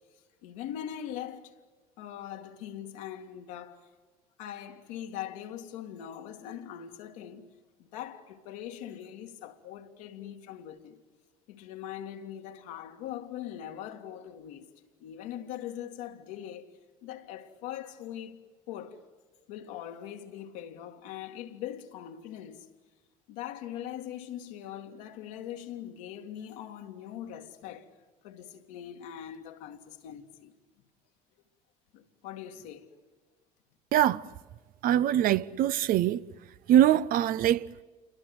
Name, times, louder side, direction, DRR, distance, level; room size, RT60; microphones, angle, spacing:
voice 1, 0.4-1.5 2.0-3.8 4.4-7.5 7.8-11.0 11.5-14.7 15.0-16.7 17.0-19.0 19.5-22.7 23.3-27.9 28.2-30.5 31.9-32.9, left 10 dB, 75° left, 2.1 m, -41 dB
voice 2, 33.9-34.2 34.8-36.2 36.7-37.7, right 11 dB, 55° right, 0.7 m, -23 dB
28.5 x 23.5 x 7.9 m
hypercardioid pair, 70°, 17 cm